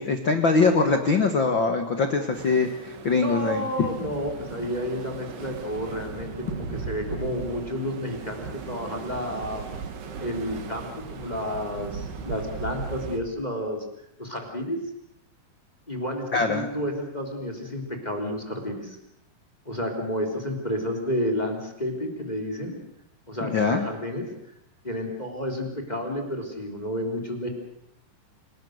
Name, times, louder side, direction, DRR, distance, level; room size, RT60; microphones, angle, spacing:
voice 1, 0.0-3.6 16.3-16.7 23.4-23.9, left 4 dB, 75° left, 6 dB, 1.0 m, -23 dB
sound 1, 2.3-13.2, right 5 dB, 70° right, 4.3 m, -37 dB
voice 2, 3.2-9.7 10.2-13.8 14.2-14.8 15.9-19.0 19.6-22.8 23.3-24.3 24.8-27.5, equal, 10° left, 4 dB, 3.0 m, -31 dB
28.0 x 19.0 x 6.6 m, 0.75 s
omnidirectional pair, 4.9 m